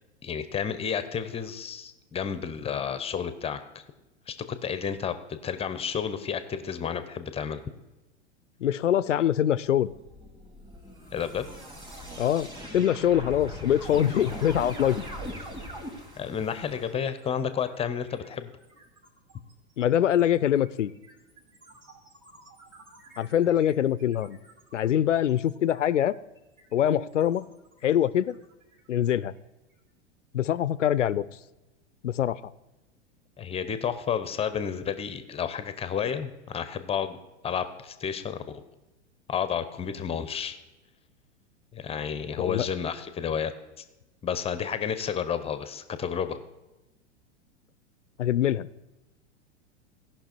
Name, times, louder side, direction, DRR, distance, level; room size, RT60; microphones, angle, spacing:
voice 1, 0.2-3.8 4.3-4.4 4.6-7.6 11.1-11.5 16.2-18.5 33.4-37.2 37.4-38.6 39.3-40.6 41.7-43.5 43.8-43.9 44.2-46.4, left 7 dB, 15° left, 11 dB, 0.7 m, -31 dB
voice 2, 8.6-9.9 12.2-12.5 12.7-15.1 19.8-20.9 23.2-24.4 24.7-26.1 26.7-27.5 27.8-28.4 28.9-29.3 30.3-31.2 32.0-32.4 42.4-42.7 48.2-48.7, left 10 dB, 85° left, 18 dB, 0.5 m, -24 dB
sound 1, 9.9-17.0, equal, 10° right, 2.2 m, -40 dB
sound 2, 15.6-29.9, right 2 dB, 45° right, 2.7 m, -57 dB
16.5 x 5.8 x 4.4 m, 1.0 s
hypercardioid pair, 100°, 36 cm